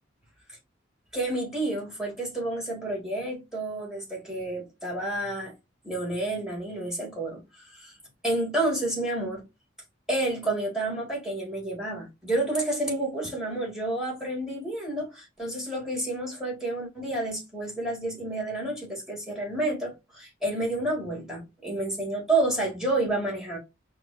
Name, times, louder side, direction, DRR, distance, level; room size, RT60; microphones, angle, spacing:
voice 1, 1.1-5.5 5.8-7.4 7.7-7.9 8.2-9.4 10.1-23.6, right 2 dB, 5° right, 1.8 m, -30 dB
5.1 x 2.3 x 2.5 m
head